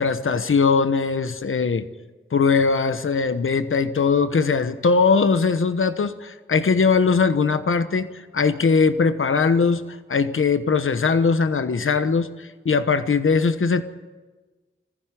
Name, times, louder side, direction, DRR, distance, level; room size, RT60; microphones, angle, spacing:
voice 1, 0.0-1.9 2.3-8.1 8.3-9.8 10.1-13.8, left 5 dB, 75° left, 11 dB, 1.1 m, -20 dB
20.0 x 15.0 x 9.2 m, 1.3 s
wide cardioid pair, 85°, 21 cm